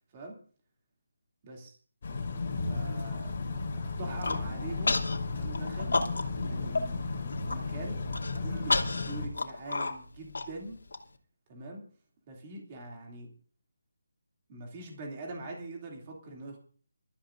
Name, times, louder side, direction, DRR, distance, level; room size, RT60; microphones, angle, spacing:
voice 1, 1.4-1.8 2.7-3.3 3.7-5.0 5.3-6.0 6.4-8.0 8.4-10.8 11.5-11.9 12.3-13.3 14.5-16.6, right 2 dB, 15° right, 0 dB, 2.7 m, -43 dB
sound 1, 2.0-9.3, left 3 dB, 25° left, 3.6 m, -34 dB
Human voice, 4.0-4.4 4.9-5.2 5.5-6.4 6.8-6.9 7.2-7.6 8.1-11.0, left 3 dB, 75° left, 2.6 m, -30 dB
27.0 x 14.0 x 2.6 m, 0.43 s
hypercardioid pair, 180°, 0 cm